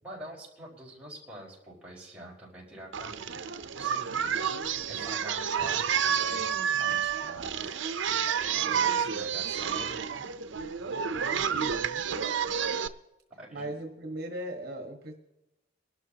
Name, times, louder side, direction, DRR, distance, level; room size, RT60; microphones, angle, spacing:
voice 1, 0.0-3.5 3.7-4.5 4.9-7.8 8.6-10.2 13.4-13.7, right 1 dB, 5° right, -5 dB, 4.6 m, -46 dB
Singing, 2.9-12.9, right 7 dB, 80° right, 0.6 m, -30 dB
voice 2, 11.5-12.1 13.5-15.1, right 1 dB, 55° right, 3 dB, 1.4 m, -38 dB
23.5 x 12.0 x 2.9 m, 0.94 s
head